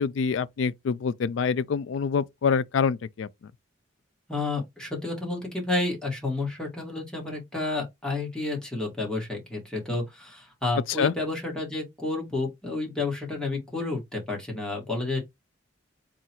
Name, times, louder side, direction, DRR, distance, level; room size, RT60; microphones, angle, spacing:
voice 1, 0.0-3.3 11.0-11.1, left 6 dB, 75° left, 0.4 m, -26 dB
voice 2, 4.3-15.2, left 2 dB, 5° left, 1.6 m, -30 dB
3.8 x 2.3 x 4.3 m
head